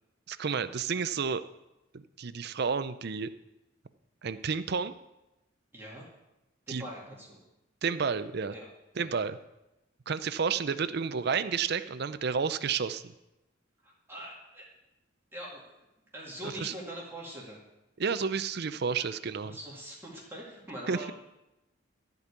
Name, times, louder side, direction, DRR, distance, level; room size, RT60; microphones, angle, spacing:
voice 1, 0.3-1.4 1.9-3.3 4.2-4.9 6.7-6.8 7.8-8.5 9.0-9.4 10.1-13.0 16.6-16.7 18.0-19.6 20.9-21.1, right 5 dB, 55° right, 13 dB, 0.5 m, -31 dB
voice 2, 5.7-6.0 6.7-7.4 8.5-9.1 13.8-14.7 15.3-15.6 16.1-17.6 19.4-21.1, right 1 dB, 10° right, -5 dB, 2.1 m, -43 dB
13.0 x 5.3 x 8.2 m, 0.94 s
head